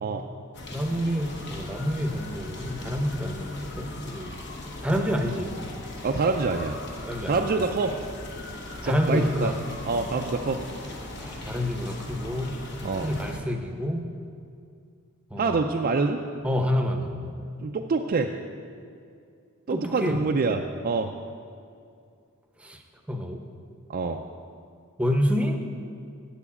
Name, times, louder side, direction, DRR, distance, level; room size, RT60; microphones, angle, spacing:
sound 1, 0.5-13.4, left 2 dB, 50° left, 1.1 m, -38 dB
voice 1, 0.7-4.3 4.8-5.5 7.0-7.6 8.8-9.5 11.2-14.1 15.3-15.6 16.4-17.4 19.7-20.2 22.6-22.8 23.1-23.4 25.0-25.6, equal, 5° right, 4 dB, 0.8 m, -28 dB
voice 2, 6.0-6.8 7.3-8.0 8.8-9.5 9.9-10.6 12.8-13.1 15.4-16.2 17.6-18.3 19.7-21.1 23.9-24.2, right 4 dB, 40° right, 3 dB, 0.4 m, -26 dB
7.8 x 7.0 x 8.4 m, 2.4 s
head